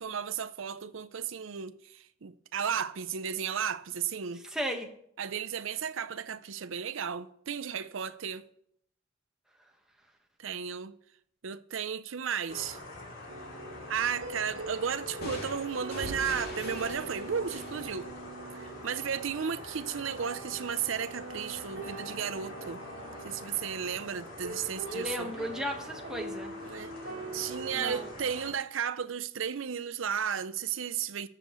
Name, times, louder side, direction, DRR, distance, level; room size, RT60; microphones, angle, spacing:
voice 1, 0.0-4.4 5.2-8.5 10.4-10.9 11.4-12.8 13.9-18.1 18.5-22.8 23.2-25.3 26.6-26.9 27.3-31.3, right 7 dB, 65° right, 0.6 m, -34 dB
voice 2, 4.5-4.9 24.9-26.5 27.7-28.1, equal, 5° right, 1.3 m, -35 dB
sound 1, 12.5-28.5, left 2 dB, 65° left, 2.8 m, -45 dB
sound 2, 13.3-28.1, right 3 dB, 85° right, 1.5 m, -44 dB
sound 3, 15.2-18.9, left 1 dB, 50° left, 2.5 m, -42 dB
20.5 x 6.9 x 3.1 m
head